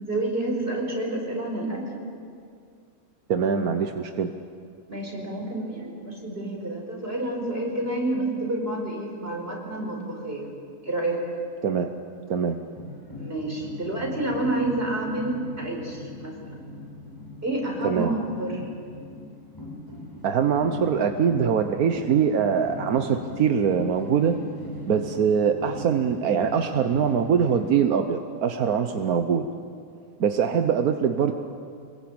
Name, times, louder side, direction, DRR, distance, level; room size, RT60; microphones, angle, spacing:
voice 1, 0.0-1.9 4.9-10.5 10.8-11.2 13.1-16.6 17.4-18.7, right 2 dB, 40° right, 0 dB, 5.5 m, -29 dB
voice 2, 3.3-4.3 11.6-11.9 12.3-12.6 17.8-18.1 20.2-24.4 24.9-29.5 30.2-31.3, right 7 dB, 85° right, 6 dB, 1.5 m, -23 dB
sound 1, 12.5-27.6, left 2 dB, 15° left, 7.6 m, -39 dB
25.0 x 22.0 x 8.8 m, 2.3 s
omnidirectional pair, 1.5 m